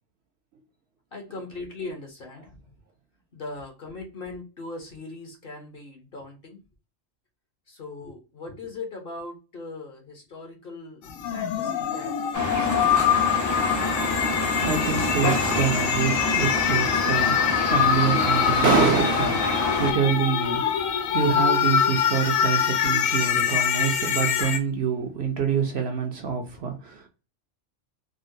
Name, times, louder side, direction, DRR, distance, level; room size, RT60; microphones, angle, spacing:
voice 1, 1.1-2.6 3.3-6.6 7.7-11.1 11.3-13.1, left 3 dB, 50° left, 0.9 m, -39 dB
sound 1, 11.1-24.6, left 8 dB, 85° left, 1.0 m, -24 dB
sound 2, 12.3-19.9, left 1 dB, 20° left, 0.4 m, -27 dB
voice 2, 14.4-27.1, right 6 dB, 60° right, 0.8 m, -26 dB
3.6 x 2.0 x 2.6 m
omnidirectional pair, 1.4 m